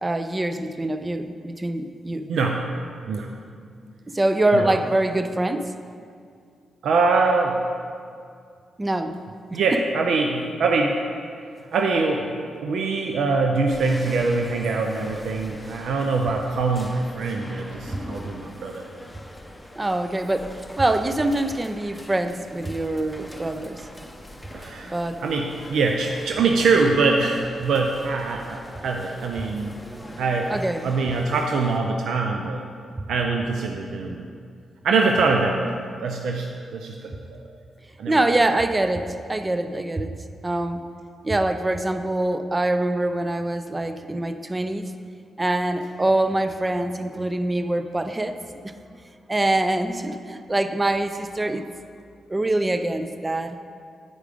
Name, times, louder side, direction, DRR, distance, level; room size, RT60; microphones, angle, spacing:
voice 1, 0.0-2.3 4.1-5.7 8.8-9.2 9.5-9.8 17.9-18.0 19.8-23.9 24.8-25.2 30.5-30.9 38.1-40.8 41.2-44.9 45.4-48.4 48.6-48.8 49.3-51.7 52.3-53.6, right 1 dB, 25° right, 9 dB, 0.5 m, -24 dB
voice 2, 2.3-2.6 3.1-3.3 4.5-4.8 6.8-7.6 9.5-11.0 11.7-18.9 24.5-29.7 30.2-30.5 30.8-32.7 33.1-34.3 34.8-35.7 36.0-37.5 38.0-38.1, right 4 dB, 75° right, 2 dB, 0.5 m, -23 dB
sound 1, 13.7-31.8, left 1 dB, 10° left, 0.8 m, -42 dB
9.4 x 4.9 x 5.0 m, 2.3 s
supercardioid pair, 55°, 0 cm